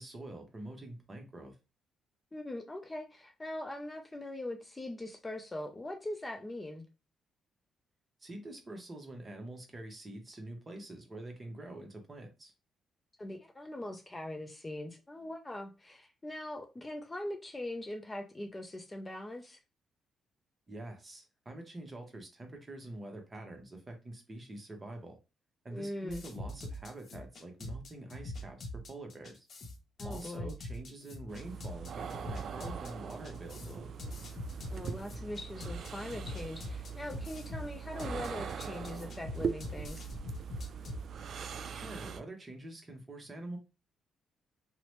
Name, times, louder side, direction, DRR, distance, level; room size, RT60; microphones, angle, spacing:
voice 1, 0.0-1.6 8.2-12.5 20.7-25.2 25.6-29.5 30.0-34.0 41.7-43.6, right 1 dB, 25° right, 0.8 m, -46 dB
voice 2, 2.3-6.9 13.2-19.6 25.7-26.3 30.0-30.5 34.7-40.1, left 1 dB, 20° left, 0.4 m, -41 dB
sound 1, 26.1-41.0, left 1 dB, 50° left, 0.7 m, -43 dB
sound 2, 31.3-42.2, right 6 dB, 60° right, 0.3 m, -41 dB
2.8 x 2.0 x 3.0 m
cardioid pair, 90°, 0 cm